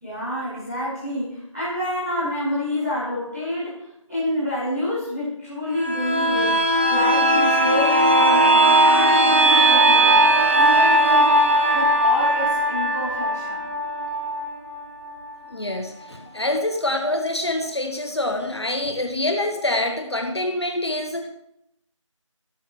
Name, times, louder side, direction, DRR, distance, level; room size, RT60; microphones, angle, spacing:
voice 1, 0.0-6.6 6.9-10.2 10.5-11.4 11.7-13.7, left 1 dB, ahead, -18 dB, 1.7 m, -28 dB
sound 1, 5.7-15.3 15.7-15.8, right 1 dB, 20° right, 0.9 m, -18 dB
voice 2, 15.5-21.3, left 1 dB, 55° left, 4 dB, 1.3 m, -25 dB
12.5 x 12.5 x 3.2 m, 0.78 s
figure-of-eight pair, 180°, 17 cm